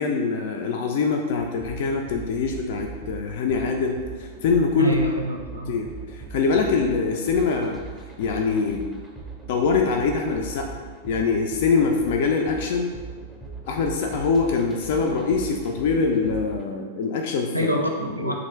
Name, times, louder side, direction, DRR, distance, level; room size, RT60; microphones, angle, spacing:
voice 1, 0.0-5.0 5.7-7.8 8.2-8.8 9.5-10.7 11.0-12.9 13.7-17.7 18.2-18.3, left 4 dB, 50° left, 2 dB, 0.3 m, -24 dB
sound 1, 1.4-16.7, right 4 dB, ahead, 0.5 m, -40 dB
voice 2, 4.8-5.8 17.5-18.3, right 1 dB, 90° right, 1 dB, 0.5 m, -26 dB
2.9 x 2.5 x 4.3 m, 1.5 s
figure-of-eight pair, 95°, 0 cm